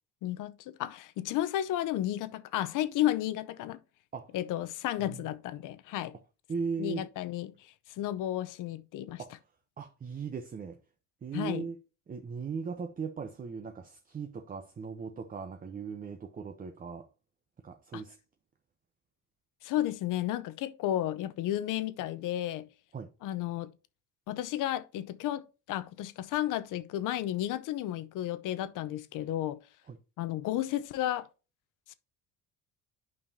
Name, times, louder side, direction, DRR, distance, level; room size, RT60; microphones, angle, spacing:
voice 1, 0.2-3.8 4.3-6.2 6.8-9.2 11.3-11.6 17.9-18.0 19.6-22.7 23.2-23.7 24.3-29.6 30.2-31.3 31.9-32.0, left 13 dB, 70° left, 0.7 m, -33 dB
voice 2, 6.5-7.1 9.2-9.4 9.8-10.8 11.2-11.8 12.1-17.1 17.6-18.2 22.9-23.1 29.9-30.0, right 5 dB, 25° right, 0.7 m, -38 dB
9.5 x 5.5 x 2.7 m
cardioid pair, 115°, 33 cm